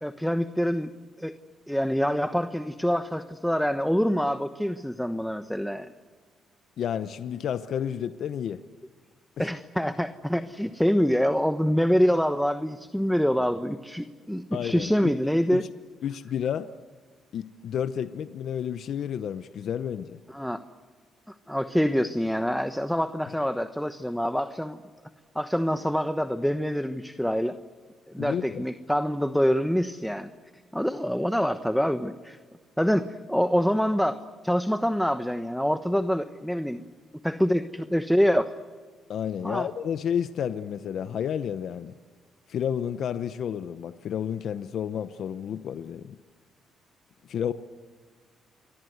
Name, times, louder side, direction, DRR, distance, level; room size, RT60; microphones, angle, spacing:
voice 1, 0.0-0.9 1.2-1.3 1.7-5.9 9.4-15.7 20.3-20.6 21.5-24.8 25.3-27.6 28.1-30.3 30.7-32.4 32.8-36.9 37.2-38.5 39.4-39.7, equal, ahead, 9 dB, 1.1 m, -25 dB
voice 2, 6.8-8.6 9.4-9.5 14.5-14.9 15.5-15.6 16.0-16.7 17.3-20.2 28.2-28.7 39.1-41.9 42.5-46.2 47.2-47.5, left 9 dB, 65° left, 11 dB, 0.9 m, -31 dB
29.0 x 23.5 x 8.1 m, 1.5 s
cardioid pair, 90°, 0 cm